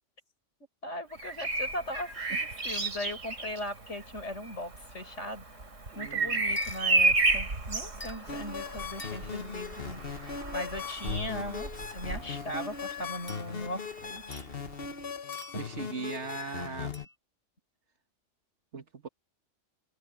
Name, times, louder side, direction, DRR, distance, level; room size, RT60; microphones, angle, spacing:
voice 1, 0.8-5.4 6.0-14.4, left 1 dB, 70° left, 7.2 m, -39 dB
Bird vocalization bird call bird song, 1.1-12.9 14.6-14.8, right 2 dB, 85° right, 3.9 m, -32 dB
voice 2, 5.9-6.4 15.5-16.9 18.7-19.1, right 5 dB, 65° right, 2.0 m, -39 dB
sound 1, 6.6-6.9 8.0-8.3 9.0-9.5 13.3-13.9 14.3-14.5 15.3-15.8 16.9-17.1, left 1 dB, 30° left, 4.7 m, -47 dB
sound 2, 8.3-17.0, left 6 dB, 50° left, 1.5 m, -39 dB
omnidirectional pair, 1.3 m